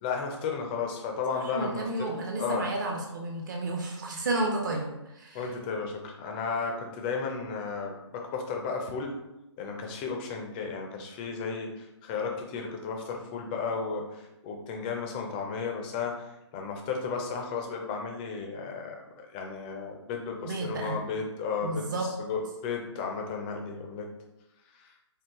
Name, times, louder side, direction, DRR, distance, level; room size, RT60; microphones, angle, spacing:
voice 1, 0.0-2.1 2.4-2.6 5.3-9.2 9.6-21.8 22.2-24.1 24.7-24.9, left 5 dB, 20° left, 2 dB, 0.4 m, -34 dB
voice 2, 1.3-5.4 20.4-21.0 21.6-22.1, right 2 dB, 40° right, 0 dB, 0.7 m, -32 dB
4.6 x 2.3 x 3.5 m, 0.93 s
figure-of-eight pair, 140°, 15 cm